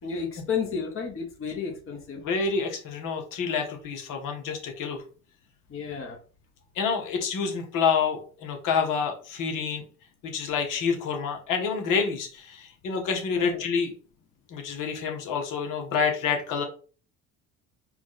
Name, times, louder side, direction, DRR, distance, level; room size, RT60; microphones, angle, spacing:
voice 1, 0.0-2.2 5.7-6.2 13.3-13.6, left 6 dB, 35° left, 0 dB, 1.5 m, -32 dB
voice 2, 2.2-5.0 6.7-9.8 10.2-13.9 14.5-16.6, left 6 dB, 55° left, 3 dB, 1.5 m, -28 dB
4.4 x 2.6 x 4.1 m, 0.38 s
hypercardioid pair, 65°, 38 cm